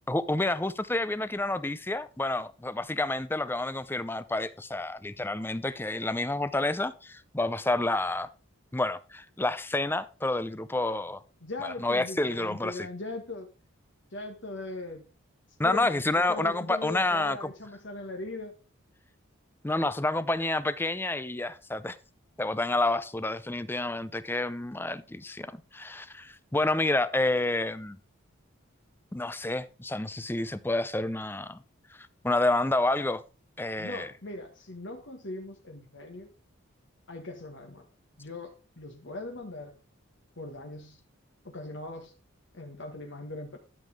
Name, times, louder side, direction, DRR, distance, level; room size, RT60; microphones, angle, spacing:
voice 1, 0.1-8.3 8.7-11.2 11.8-12.9 15.6-17.5 19.6-22.0 22.4-28.0 29.1-31.6 32.2-33.2 33.6-34.1, left 2 dB, 10° left, 0.5 m, -29 dB
voice 2, 11.4-13.5 14.1-15.0 15.6-18.6 33.8-36.3 37.1-37.8 38.2-39.7 40.4-41.0 41.4-42.1 42.5-43.6, left 2 dB, 60° left, 1.6 m, -40 dB
12.5 x 7.4 x 3.5 m
head